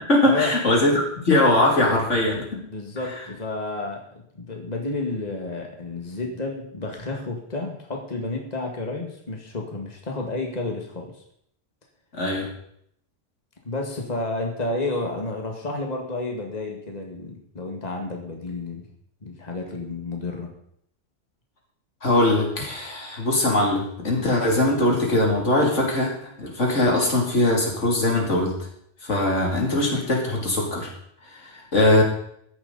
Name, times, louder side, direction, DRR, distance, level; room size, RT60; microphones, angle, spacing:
voice 1, 0.0-2.6 12.1-12.5 22.0-28.5 29.0-30.9 31.4-32.0, left 1 dB, 80° left, -1 dB, 3.2 m, -21 dB
voice 2, 2.7-11.1 13.6-18.9 19.2-20.5, left 2 dB, 35° left, 1 dB, 2.0 m, -31 dB
14.0 x 10.5 x 4.1 m, 0.70 s
omnidirectional pair, 1.2 m